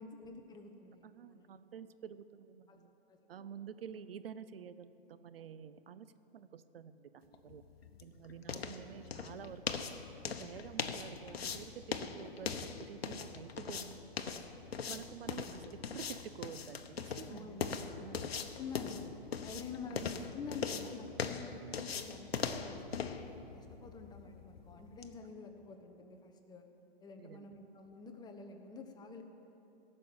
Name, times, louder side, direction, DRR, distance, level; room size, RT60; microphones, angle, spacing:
voice 1, 0.0-1.6 2.7-2.8 3.1-3.2 8.5-8.7 17.3-17.7 18.6-19.1 19.4-23.1 23.5-26.6 27.0-29.2, left 5 dB, 15° left, 4 dB, 0.9 m, -48 dB
voice 2, 1.0-2.9 3.3-7.6 8.0-9.9 10.2-14.4 14.9-17.6 18.0-18.3 18.9-19.0 19.9-20.1 27.2-27.5, right 8 dB, 65° right, 13 dB, 0.6 m, -49 dB
sound 1, 7.3-25.1, left 6 dB, 70° left, 1.0 m, -41 dB
17.0 x 6.7 x 8.4 m, 2.9 s
hypercardioid pair, 125°, 31 cm